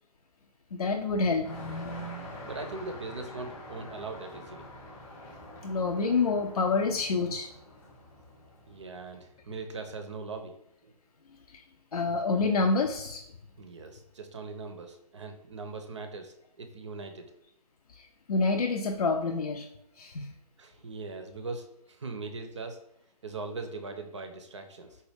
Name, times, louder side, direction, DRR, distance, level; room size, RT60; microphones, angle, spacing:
voice 1, 0.7-1.5 5.6-7.5 11.5-11.6 11.9-13.2 18.0-19.7 20.0-20.3, left 4 dB, 65° left, 3 dB, 0.4 m, -27 dB
sound 1, 1.4-9.7, equal, 10° left, 0.7 m, -44 dB
voice 2, 2.4-4.7 8.7-10.6 10.8-10.9 13.6-17.3 20.6-22.8 23.2-25.0, right 3 dB, 45° right, 6 dB, 0.5 m, -40 dB
4.0 x 2.1 x 3.3 m, 0.78 s
figure-of-eight pair, 145°, 21 cm